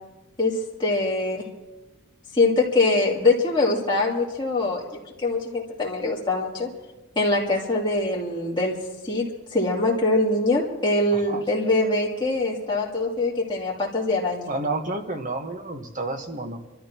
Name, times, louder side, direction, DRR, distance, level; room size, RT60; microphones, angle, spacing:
voice 1, 0.4-1.4 2.3-4.8 5.2-6.7 7.1-8.8 9.0-9.2 9.5-14.5, left 2 dB, 20° left, -5 dB, 3.0 m, -23 dB
voice 2, 11.1-11.4 14.4-16.6, right 2 dB, 35° right, 4 dB, 1.3 m, -30 dB
28.0 x 13.5 x 3.0 m, 1.1 s
head